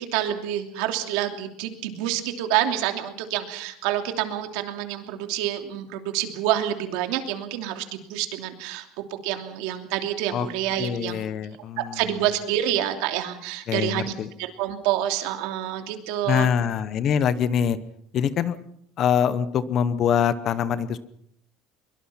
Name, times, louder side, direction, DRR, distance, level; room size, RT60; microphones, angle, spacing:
voice 1, 0.1-8.9 9.2-11.2 11.9-14.1 14.4-16.5, right 12 dB, 65° right, 6 dB, 2.9 m, -27 dB
voice 2, 10.8-12.0 13.7-14.3 16.3-17.8 18.1-18.6 19.0-21.0, left 8 dB, 35° left, 15 dB, 0.9 m, -24 dB
23.5 x 23.5 x 5.8 m, 0.72 s
cardioid pair, 180°, 0 cm